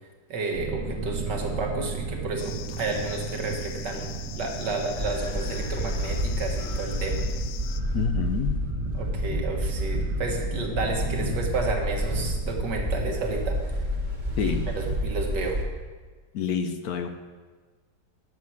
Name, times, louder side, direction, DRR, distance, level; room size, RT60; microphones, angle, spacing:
voice 1, 0.3-7.3 8.9-13.6 14.4-15.6, right 3 dB, 70° right, 2 dB, 2.2 m, -31 dB
sound 1, 0.5-15.0 15.3-15.4, right 4 dB, 50° right, 1.6 m, -38 dB
sound 2, 2.4-7.8, left 10 dB, 85° left, 1.3 m, -42 dB
sound 3, 5.0-15.6, equal, 25° right, 1.5 m, -29 dB
voice 2, 7.9-8.6 14.4-14.7 16.3-17.1, left 7 dB, 65° left, 8 dB, 1.1 m, -27 dB
11.5 x 7.3 x 6.2 m, 1.4 s
omnidirectional pair, 1.9 m